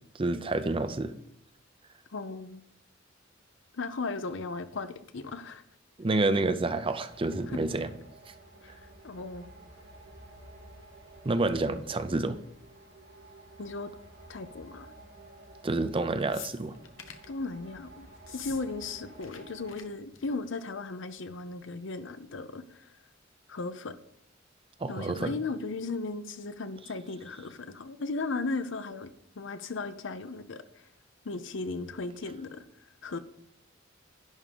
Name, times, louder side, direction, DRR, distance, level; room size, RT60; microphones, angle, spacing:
voice 1, 0.2-1.1 6.0-7.9 11.2-12.4 15.6-16.7 24.8-25.3, right 2 dB, 25° right, 11 dB, 0.5 m, -28 dB
voice 2, 2.1-2.6 3.7-5.6 7.5-7.6 8.6-8.8 9.0-9.5 13.6-13.9 14.3-14.9 17.3-18.1 18.3-22.9 23.5-24.0 24.9-30.6 31.2-32.6 33.0-33.2, left 3 dB, 70° left, 12 dB, 0.7 m, -36 dB
sound 1, 7.1-19.9, right 2 dB, 80° right, 3.1 m, -52 dB
sound 2, 16.3-17.3 18.2-18.6 18.9-19.4 19.7-19.8 20.1-20.4 21.4-21.5, left 9 dB, 85° left, 1.0 m, -45 dB
11.0 x 3.7 x 6.7 m, 0.74 s
head